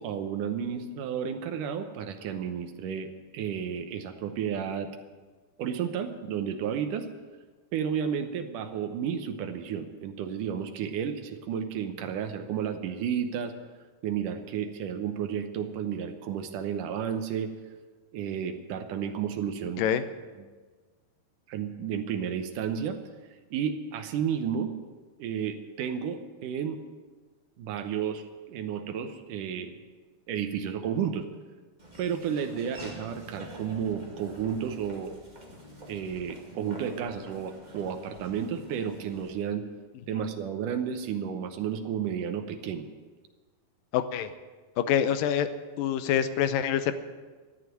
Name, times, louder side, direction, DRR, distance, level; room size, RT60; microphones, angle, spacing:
voice 1, 0.0-4.9 5.6-7.1 7.7-13.5 14.0-17.5 18.1-19.8 21.5-23.0 23.5-24.7 25.2-26.8 27.6-29.7 30.3-31.3 32.0-35.1 35.9-39.7 40.1-42.9, right 8 dB, 75° right, 7 dB, 2.1 m, -32 dB
Laughter / Walk footsteps, 31.8-39.3, equal, 15° right, 1.6 m, -47 dB
voice 2, 43.9-44.3 44.8-45.5 45.8-46.9, left 9 dB, 75° left, 11 dB, 2.2 m, -26 dB
14.0 x 9.9 x 9.4 m, 1.4 s
omnidirectional pair, 4.5 m